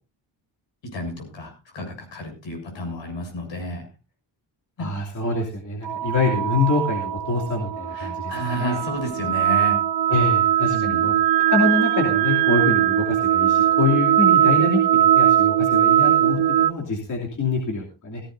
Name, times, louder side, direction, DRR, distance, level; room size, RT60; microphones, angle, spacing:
voice 1, 0.8-3.9 4.8-4.9 7.9-9.8 10.6-11.1, equal, 75° left, 3 dB, 7.3 m, -31 dB
voice 2, 4.8-8.3 8.6-8.8 10.1-11.1 11.5-18.2, left 3 dB, 40° left, -1 dB, 3.0 m, -25 dB
sound 1, 5.8-16.7, right 11 dB, 60° right, 0.8 m, -20 dB
16.5 x 16.5 x 2.7 m, 0.31 s
wide cardioid pair, 180°, 45 cm